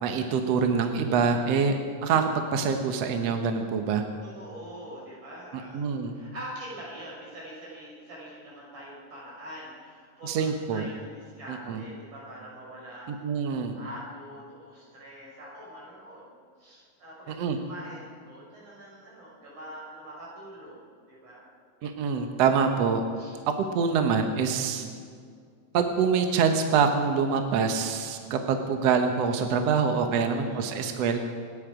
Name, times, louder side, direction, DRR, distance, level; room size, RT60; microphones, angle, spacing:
voice 1, 0.0-1.7 2.0-4.0 5.7-6.1 10.2-10.9 11.5-11.8 13.2-13.7 17.3-17.6 21.8-23.0 23.8-24.9 25.7-31.2, right 6 dB, 65° right, 5 dB, 1.9 m, -25 dB
voice 2, 4.2-13.2 13.8-16.3 16.6-20.8 21.1-21.5 21.8-22.1 23.2-23.4 30.1-30.9, right 1 dB, 80° right, -6 dB, 7.4 m, -44 dB
27.5 x 10.5 x 5.0 m, 2.1 s
omnidirectional pair, 3.5 m